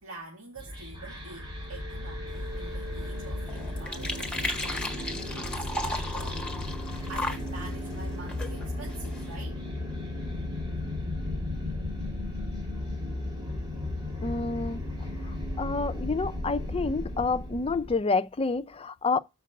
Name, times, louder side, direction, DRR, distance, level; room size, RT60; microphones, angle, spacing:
voice 1, 0.0-6.7 7.1-9.7 13.9-14.3, right 3 dB, 70° right, 2.0 m, -46 dB
sound 1, 0.6-18.0, left 1 dB, 20° right, 2.8 m, -35 dB
sound 2, 2.3-9.4, left 1 dB, 5° left, 1.4 m, -37 dB
voice 2, 14.2-14.8 15.6-19.2, left 4 dB, 25° left, 0.4 m, -28 dB
7.2 x 4.6 x 6.9 m
head